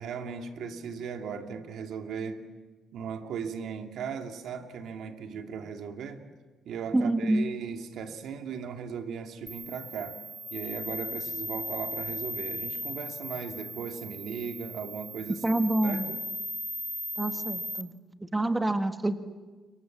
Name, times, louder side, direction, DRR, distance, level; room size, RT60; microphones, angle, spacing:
voice 1, 0.0-2.5 2.9-6.2 6.7-10.2 10.5-15.6 15.8-16.2, right 6 dB, 75° right, 5 dB, 2.6 m, -37 dB
voice 2, 6.9-7.4 15.4-16.1 17.2-17.9 18.2-19.2, right 1 dB, 15° right, 8 dB, 1.6 m, -27 dB
sound 1, 9.5-17.8, equal, ahead, 3.3 m, -37 dB
29.0 x 24.5 x 7.5 m, 1.3 s
cardioid pair, 90°, 0 cm